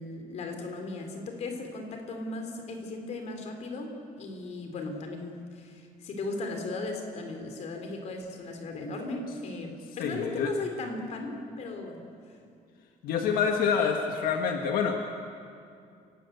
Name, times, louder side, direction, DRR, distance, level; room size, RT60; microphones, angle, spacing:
voice 1, 0.0-12.0, left 3 dB, 50° left, 4 dB, 3.8 m, -36 dB
voice 2, 10.0-10.5 13.0-14.9, left 6 dB, 85° left, 3 dB, 1.8 m, -27 dB
29.5 x 18.0 x 8.2 m, 2.4 s
cardioid pair, 175°, 15 cm